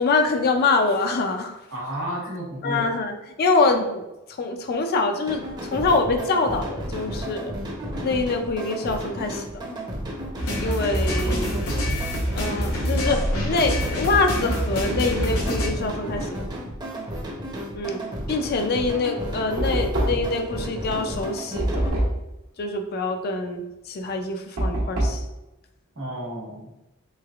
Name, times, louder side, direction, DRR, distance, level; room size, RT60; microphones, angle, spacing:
voice 1, 0.0-1.6 2.6-4.0 4.4-5.4 5.7-7.5 8.0-9.4 10.6-11.9 12.3-16.4 17.7-18.0 18.3-22.0 22.6-25.2, left 3 dB, 45° left, 4 dB, 0.4 m, -25 dB
voice 2, 1.7-2.9 3.7-3.8 11.1-11.6 25.9-26.7, right 1 dB, 65° right, -4 dB, 1.1 m, -32 dB
sound 1, 5.3-21.9, equal, 20° right, 0.6 m, -33 dB
sound 2, 10.4-15.7, equal, 80° left, 0.8 m, -26 dB
Knock, 19.6-20.4 21.6-22.3 24.6-25.3, right 1 dB, 85° right, 1.0 m, -24 dB
3.2 x 3.1 x 2.4 m, 0.93 s
head